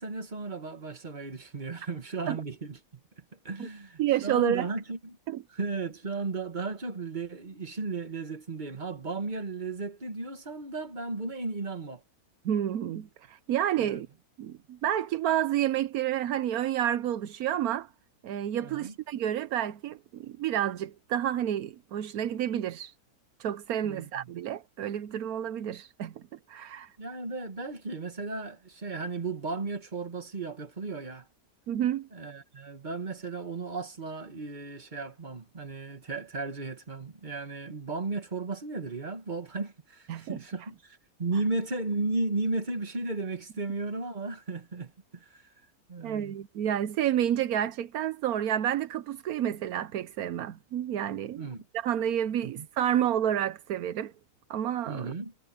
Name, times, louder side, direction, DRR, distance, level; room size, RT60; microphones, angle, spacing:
voice 1, 0.0-2.8 3.2-5.2 5.5-12.0 13.8-14.0 18.6-18.9 23.8-24.3 27.0-31.3 32.1-45.5 45.9-46.4 51.4-51.6 52.4-52.7 54.9-55.3, right 3 dB, 30° right, 2.0 m, -35 dB
voice 2, 4.0-4.7 5.3-5.4 12.4-14.1 14.4-17.9 18.2-22.9 23.4-26.9 31.7-32.1 40.1-40.4 46.0-51.5 51.7-54.1 54.5-55.1, right 11 dB, 80° right, 1.2 m, -30 dB
omnidirectional pair, 1.5 m